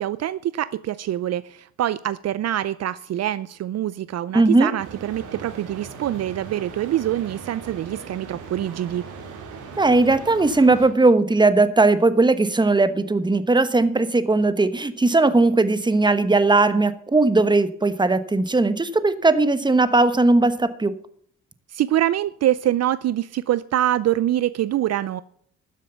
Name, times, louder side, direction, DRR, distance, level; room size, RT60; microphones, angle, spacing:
voice 1, 0.0-9.1 21.7-25.2, right 12 dB, 60° right, 17 dB, 0.5 m, -25 dB
voice 2, 4.3-4.7 9.8-20.9, right 3 dB, 15° right, 13 dB, 1.1 m, -18 dB
sound 1, 4.8-10.9, right 5 dB, 80° right, 3.4 m, -39 dB
12.5 x 7.5 x 6.9 m, 0.63 s
cardioid pair, 90°, 30 cm